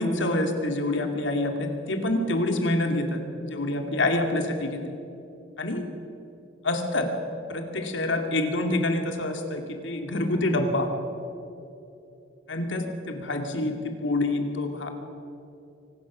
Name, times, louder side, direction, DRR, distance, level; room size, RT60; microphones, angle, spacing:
voice 1, 0.0-4.9 5.6-5.8 6.6-7.1 7.5-10.9 12.5-14.9, left 2 dB, 80° left, 4 dB, 2.5 m, -27 dB
25.0 x 19.0 x 6.3 m, 2.9 s
head